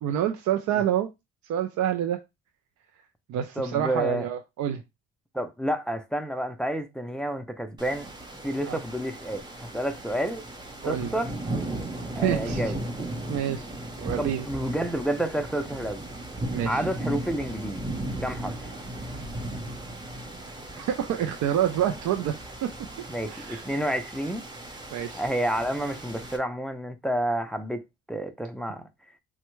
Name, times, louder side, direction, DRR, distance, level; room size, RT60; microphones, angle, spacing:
voice 1, 0.0-1.1 1.4-2.2 3.3-4.8 8.6-8.8 10.8-11.1 12.2-12.7 13.3-13.7 14.0-14.5 16.5-16.8 20.8-22.3 22.6-22.7 23.3-23.6 24.9-25.2, right 10 dB, 70° right, 0.5 m, -27 dB
voice 2, 3.6-4.3 5.3-8.1 8.4-10.4 10.8-11.4 12.2-12.8 14.2-16.1 16.7-17.9 18.2-18.7 23.1-24.4 25.1-27.8 28.1-28.9, right 1 dB, 5° left, 0.4 m, -30 dB
sound 1, 7.8-26.4, right 1 dB, 15° right, 0.7 m, -36 dB
3.4 x 2.1 x 3.0 m
cardioid pair, 90°, 30 cm